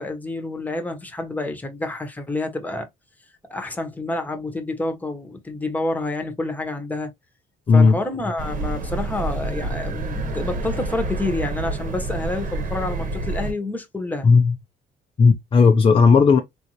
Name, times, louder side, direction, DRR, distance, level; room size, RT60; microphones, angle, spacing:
voice 1, 0.0-2.9 3.5-7.1 7.7-14.3, left 2 dB, 10° left, 1.0 m, -28 dB
voice 2, 7.7-8.0 14.2-14.6 15.2-16.4, left 5 dB, 30° left, 0.6 m, -14 dB
sound 1, 8.4-13.5, right 2 dB, 50° right, 1.2 m, -28 dB
3.8 x 2.6 x 3.0 m
cardioid pair, 110°, 17 cm